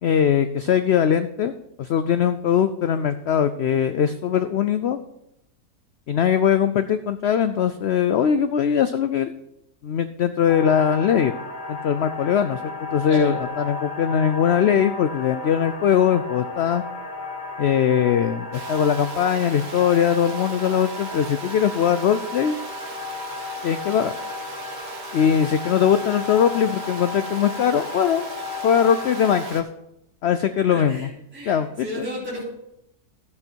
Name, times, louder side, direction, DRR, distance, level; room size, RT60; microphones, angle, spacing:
voice 1, 0.0-1.5 1.8-5.0 6.1-9.3 9.8-11.3 11.7-16.8 17.6-22.6 23.6-24.1 25.1-28.3 28.6-29.7 30.2-31.1 31.4-32.0, left 8 dB, 85° left, 11 dB, 0.5 m, -21 dB
sound 1, 10.5-29.5, left 3 dB, 35° left, 1.1 m, -34 dB
voice 2, 13.0-13.4 30.7-32.4, equal, 5° right, -8 dB, 3.6 m, -33 dB
Water, 18.5-29.6, right 5 dB, 55° right, 1.5 m, -40 dB
12.0 x 7.8 x 4.5 m, 0.83 s
omnidirectional pair, 1.7 m